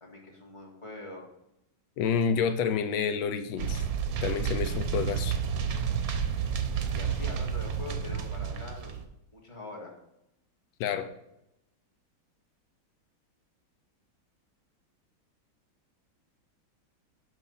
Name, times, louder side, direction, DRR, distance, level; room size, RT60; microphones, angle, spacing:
voice 1, 0.0-1.3 6.5-9.0 9.3-9.9, left 2 dB, 15° left, -2 dB, 1.6 m, -44 dB
voice 2, 2.0-3.8 4.2-5.4 10.8-11.1, left 6 dB, 80° left, 9 dB, 1.4 m, -29 dB
sound 1, 3.6-9.0, right 7 dB, 60° right, 1.0 m, -30 dB
6.2 x 5.5 x 5.7 m, 0.83 s
omnidirectional pair, 2.2 m